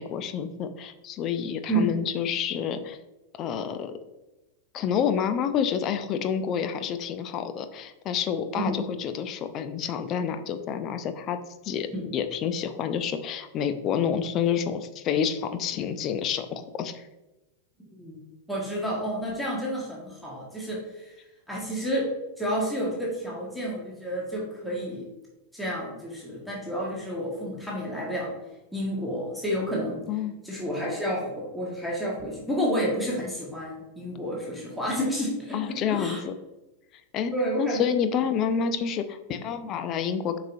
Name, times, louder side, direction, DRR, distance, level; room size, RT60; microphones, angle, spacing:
voice 1, 0.0-3.0 3.3-4.0 4.7-11.4 11.6-11.9 12.1-17.1 30.1-30.3 35.5-36.3 37.1-37.3 37.6-40.4, left 8 dB, 35° left, 9 dB, 0.5 m, -28 dB
voice 2, 18.5-21.1 21.5-22.1 22.4-25.1 25.5-28.3 28.7-30.0 30.4-36.2 37.3-37.9, equal, ahead, -5 dB, 1.7 m, -30 dB
7.4 x 4.9 x 2.7 m, 1.0 s
figure-of-eight pair, 90°, 0 cm